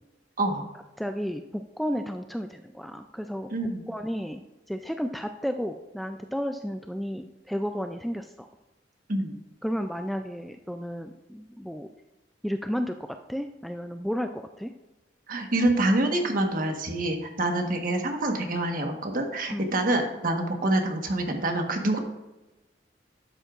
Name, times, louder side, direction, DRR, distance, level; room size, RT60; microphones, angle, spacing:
voice 1, 1.0-3.5 3.9-4.4 4.7-8.5 9.6-11.9 12.4-14.7 19.5-19.7, equal, ahead, 6 dB, 0.3 m, -32 dB
voice 2, 15.3-22.0, right 1 dB, 50° right, 3 dB, 1.3 m, -26 dB
12.0 x 8.0 x 2.4 m, 1.0 s
head